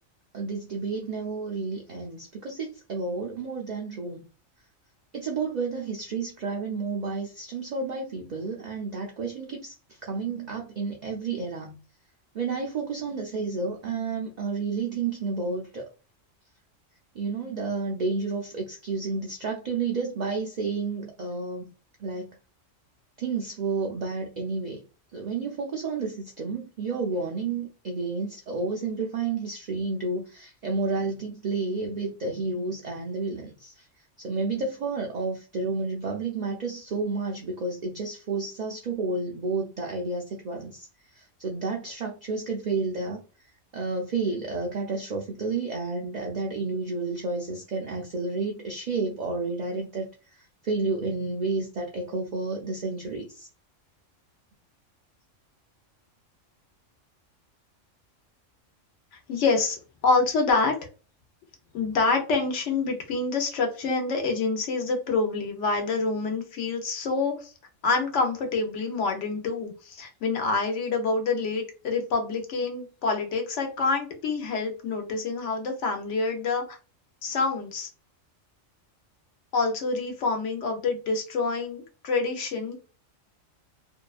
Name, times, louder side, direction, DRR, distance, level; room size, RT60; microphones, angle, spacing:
voice 1, 0.3-4.2 5.1-9.7 10.0-11.8 12.3-15.8 17.2-21.6 22.0-22.3 23.2-24.8 25.1-33.7 34.2-40.9 41.2-43.2 43.7-50.1 50.6-53.5, right 4 dB, 65° right, 0 dB, 0.4 m, -31 dB
voice 2, 59.3-60.7 61.7-67.5 67.8-76.8 77.2-77.9 79.5-82.8, left 4 dB, 70° left, 3 dB, 1.0 m, -27 dB
2.7 x 2.2 x 2.4 m, 0.35 s
omnidirectional pair, 1.3 m